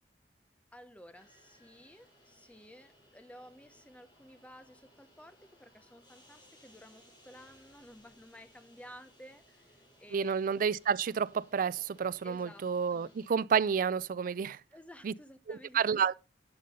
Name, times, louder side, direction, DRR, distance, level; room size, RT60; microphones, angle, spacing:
voice 1, 0.7-10.4 12.2-13.2 14.7-16.0, equal, 10° left, 0.9 m, -54 dB
sound 1, 1.1-13.3, equal, 25° left, 3.6 m, -63 dB
voice 2, 10.1-14.6 15.0-15.1 15.5-16.1, right 6 dB, 50° right, 0.4 m, -30 dB
11.0 x 5.4 x 5.3 m
head